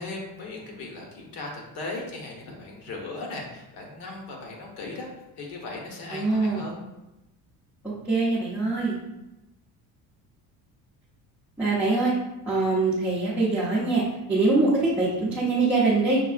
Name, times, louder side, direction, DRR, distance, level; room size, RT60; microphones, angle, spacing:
voice 1, 0.0-5.1 5.4-6.8, left 2 dB, 75° left, 0 dB, 1.3 m, -37 dB
voice 2, 6.1-6.7 8.1-9.0 11.6-12.1 12.5-14.0 14.3-16.2, right 3 dB, 5° right, -11 dB, 0.5 m, -23 dB
5.6 x 3.3 x 2.4 m, 0.95 s
cardioid pair, 180°, 39 cm